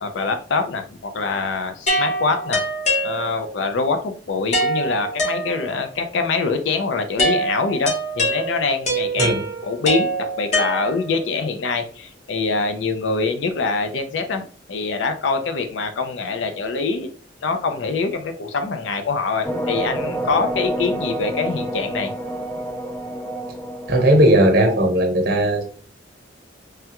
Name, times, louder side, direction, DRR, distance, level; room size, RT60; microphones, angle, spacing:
voice 1, 0.0-2.6 3.0-14.4 14.7-17.1 17.4-22.1, left 4 dB, 85° left, 7 dB, 0.4 m, -24 dB
sound 1, 1.9-3.6 4.5-5.9 7.2-11.3, right 1 dB, 40° left, 0.9 m, -24 dB
sound 2, 19.4-24.9, right 1 dB, 10° left, 0.4 m, -28 dB
voice 2, 23.9-25.6, right 1 dB, 55° right, 3 dB, 0.9 m, -16 dB
3.3 x 2.2 x 2.9 m, 0.41 s
head